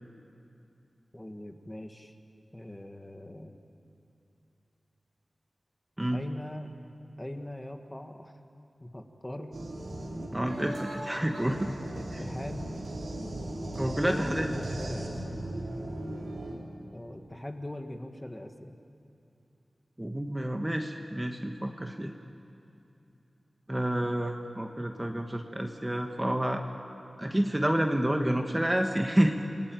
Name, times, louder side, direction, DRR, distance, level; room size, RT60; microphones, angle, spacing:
voice 1, 1.1-2.1 2.5-3.6 6.1-6.7 7.2-8.4 8.8-9.6 11.9-12.7 14.0-15.4 16.9-18.7, left 1 dB, 15° left, 5 dB, 1.8 m, -41 dB
sound 1, 9.5-16.5, right 1 dB, 90° right, 4.2 m, -37 dB
voice 2, 10.3-11.7 12.1-12.2 13.7-14.5 20.0-22.1 23.7-26.6 27.2-29.4, right 1 dB, 15° right, 4 dB, 1.4 m, -29 dB
28.0 x 19.0 x 9.2 m, 2.7 s
wide cardioid pair, 90°, 0 cm